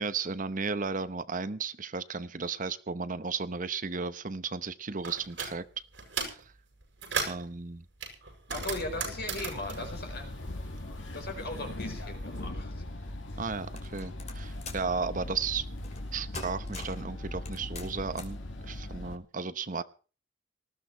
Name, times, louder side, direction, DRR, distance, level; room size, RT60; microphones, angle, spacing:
voice 1, 0.0-5.6 6.3-6.4 7.3-7.8 13.4-15.7 16.1-18.4 18.6-19.8, right 4 dB, 45° right, 13 dB, 0.9 m, -34 dB
sound 1, 5.0-5.5 5.9-6.4 6.8-7.5 8.0-10.9 11.2-12.3, right 5 dB, 65° right, 7.2 m, -36 dB
sound 2, 8.5-19.2, left 1 dB, 85° left, 2.1 m, -40 dB
voice 2, 8.5-10.5 11.1-13.4, left 2 dB, 55° left, 5 dB, 4.4 m, -39 dB
sound 3, 13.8-14.9 15.8-16.1 16.3-17.1 17.5-18.4, left 3 dB, 35° left, 3.0 m, -43 dB
19.5 x 14.5 x 4.5 m, 0.37 s
head